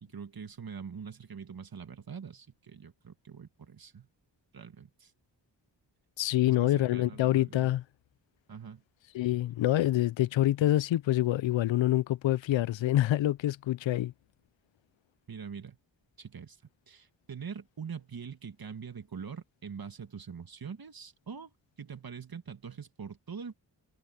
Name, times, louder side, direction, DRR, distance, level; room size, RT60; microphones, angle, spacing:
voice 1, 0.0-4.1 4.5-5.1 6.5-7.7 8.5-8.8 15.3-15.8 16.2-16.6 16.9-21.5 21.8-23.5, right 6 dB, 55° right, 1.9 m, -43 dB
voice 2, 6.2-7.8 9.1-14.1, left 14 dB, 90° left, 0.5 m, -26 dB
cardioid pair, 75°, 44 cm